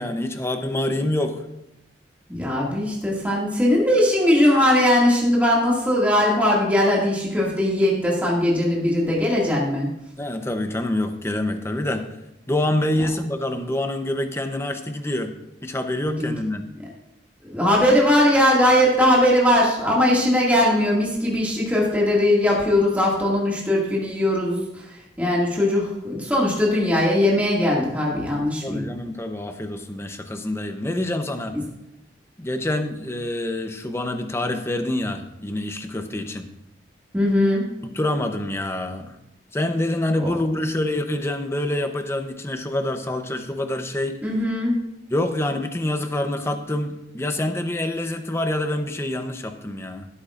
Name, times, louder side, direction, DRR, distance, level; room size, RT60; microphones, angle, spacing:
voice 1, 0.0-1.5 10.2-12.0 12.5-15.3 15.6-16.6 28.6-31.6 32.4-36.5 37.8-39.2 39.5-44.2 45.1-50.1, left 1 dB, 15° left, 7 dB, 0.7 m, -26 dB
voice 2, 2.3-9.9 16.1-16.4 17.5-24.9 25.2-28.9 31.5-31.6 37.1-37.6 40.2-40.3 44.2-44.8, left 1 dB, 10° right, -4 dB, 2.0 m, -20 dB
16.0 x 8.6 x 2.5 m, 0.88 s
head